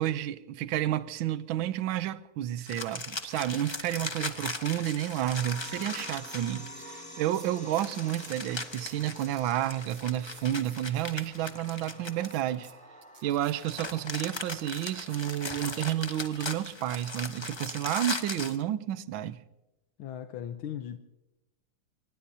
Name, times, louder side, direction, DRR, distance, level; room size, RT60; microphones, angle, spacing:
voice 1, 0.0-12.7 13.2-19.4, right 12 dB, 80° right, 1.5 m, -31 dB
sound 1, 2.6-6.9 7.7-12.7 13.4-18.6, left 3 dB, 25° left, 0.6 m, -38 dB
sound 2, 4.9-16.0, equal, 5° left, 5.0 m, -49 dB
sound 3, 5.3-6.4 6.8-6.9 7.2-8.4 8.7-11.3 11.7-11.8 12.2-14.0 14.4-16.1 16.8-17.0, right 6 dB, 45° right, 1.1 m, -55 dB
voice 2, 20.0-21.0, left 10 dB, 85° left, 1.7 m, -37 dB
25.0 x 20.0 x 2.8 m
omnidirectional pair, 2.2 m